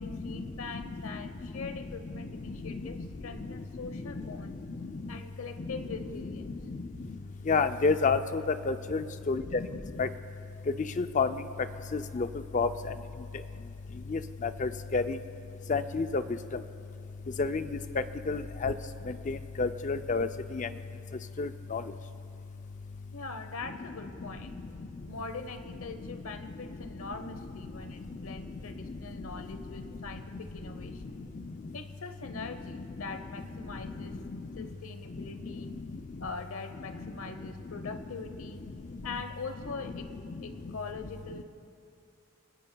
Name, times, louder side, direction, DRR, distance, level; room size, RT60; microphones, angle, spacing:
voice 1, 0.0-4.6 5.1-6.6 9.1-9.4 23.1-24.6 25.1-31.2 31.7-34.2 34.6-35.7 36.2-38.6 39.0-41.4, left 4 dB, 75° left, 9 dB, 0.9 m, -42 dB
voice 2, 7.5-8.2 8.7-9.4 10.0-10.1 11.0-11.3 11.9-12.3 12.5-12.7 14.1-14.2 14.6-15.1 15.7-16.2 17.4-17.6 18.3-18.7 19.3-20.3 20.5-20.7 21.4-21.8, left 4 dB, 35° left, 10 dB, 0.4 m, -28 dB
28.0 x 15.0 x 2.3 m, 2.5 s
head